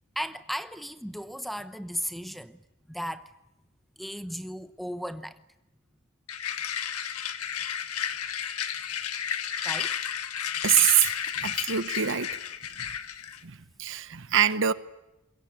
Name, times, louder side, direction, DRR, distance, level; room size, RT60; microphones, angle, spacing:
voice 1, 0.1-3.3 4.0-5.4 9.6-10.0, equal, ahead, 0.9 m, -36 dB
sound 1, 6.3-13.4, left 9 dB, 75° left, 1.7 m, -32 dB
voice 2, 10.6-12.3 12.8-12.9 13.4-14.7, right 10 dB, 55° right, 1.0 m, -25 dB
27.0 x 23.0 x 8.9 m
head